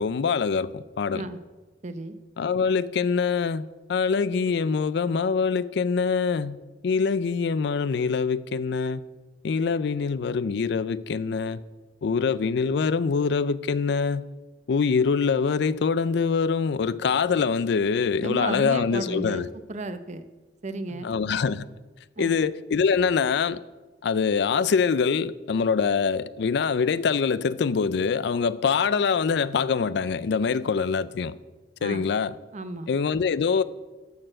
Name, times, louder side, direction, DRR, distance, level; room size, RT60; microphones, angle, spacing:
voice 1, 0.0-1.3 2.4-3.6 3.9-9.0 9.4-11.6 12.0-14.3 14.7-19.5 20.9-21.7 22.2-23.6 24.0-31.3 31.8-32.4 32.9-33.6, left 5 dB, 65° left, 0.4 m, -24 dB
voice 2, 1.8-2.2 18.2-20.2 20.6-21.1 22.2-22.4 31.8-32.1 32.5-32.9, right 2 dB, 40° right, 0.6 m, -33 dB
12.0 x 4.5 x 7.7 m
head